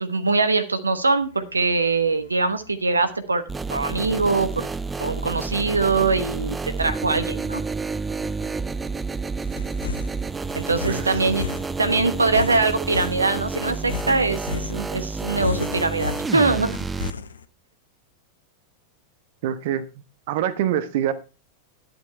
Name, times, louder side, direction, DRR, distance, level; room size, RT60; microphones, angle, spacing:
voice 1, 0.0-3.4 3.7-4.7 5.0-7.6 10.5-16.7, right 3 dB, 80° right, 10 dB, 1.0 m, -22 dB
sound 1, 1.2-17.5, left 6 dB, 70° left, 0.9 m, -37 dB
sound 2, 3.5-17.1, right 4 dB, 15° right, 0.5 m, -30 dB
voice 2, 10.9-11.3 19.4-19.9 20.3-21.1, right 10 dB, 50° right, 14 dB, 1.0 m, -25 dB
11.5 x 8.1 x 4.4 m, 0.30 s
figure-of-eight pair, 90°, 0 cm